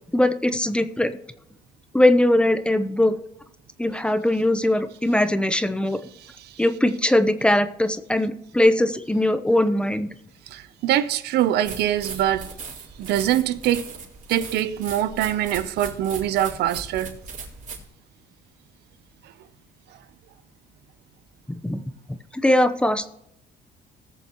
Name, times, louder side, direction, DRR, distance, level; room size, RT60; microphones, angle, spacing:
voice 1, 0.1-1.1 1.9-3.2 3.8-6.0 6.6-10.1 21.6-21.8 22.4-23.1, left 1 dB, 5° left, 0.9 m, -20 dB
voice 2, 6.2-6.6 10.5-12.5 13.0-13.9 14.3-17.2, right 12 dB, 75° right, 0.7 m, -24 dB
sound 1, 11.6-17.9, right 4 dB, 50° right, 3.9 m, -38 dB
20.0 x 7.0 x 3.1 m
cardioid pair, 110°, 17 cm